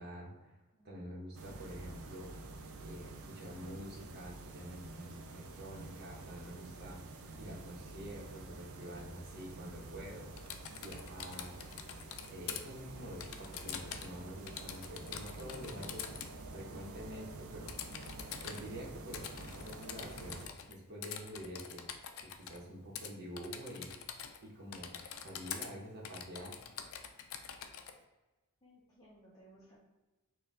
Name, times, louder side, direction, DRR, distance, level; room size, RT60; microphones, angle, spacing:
voice 1, 0.0-0.6 0.8-2.3 2.8-7.0 7.4-10.3 10.8-11.5 12.3-16.0 16.5-21.8 22.2-23.9 24.4-26.5, equal, 45° right, -3 dB, 1.0 m, -47 dB
voice 2, 0.7-1.1 28.6-29.8, right 1 dB, 15° left, -6 dB, 0.6 m, -61 dB
sound 1, 1.3-20.5, right 2 dB, 65° right, 0.4 m, -49 dB
Typing, 10.4-12.6 13.2-14.2 14.5-16.3 17.7-18.6 19.1-20.7 21.0-22.6 23.0-23.1 23.4-24.4 24.7-25.7 26.0-27.9, left 8 dB, 65° left, 0.4 m, -45 dB
4.4 x 2.3 x 3.6 m, 1.1 s
head